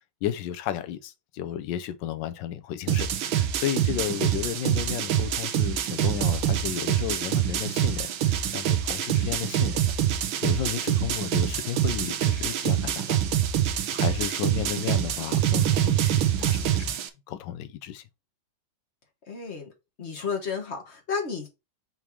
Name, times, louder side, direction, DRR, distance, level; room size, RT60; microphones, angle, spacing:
voice 1, 0.2-9.8 10.4-13.2 13.9-16.9 17.3-18.0, left 11 dB, 70° left, 1.2 m, -33 dB
sound 1, 2.9-17.1, right 10 dB, 80° right, 1.6 m, -25 dB
voice 2, 14.4-15.0 19.3-19.7 20.0-21.5, left 5 dB, 35° left, 1.5 m, -33 dB
6.0 x 3.5 x 4.5 m
omnidirectional pair, 2.2 m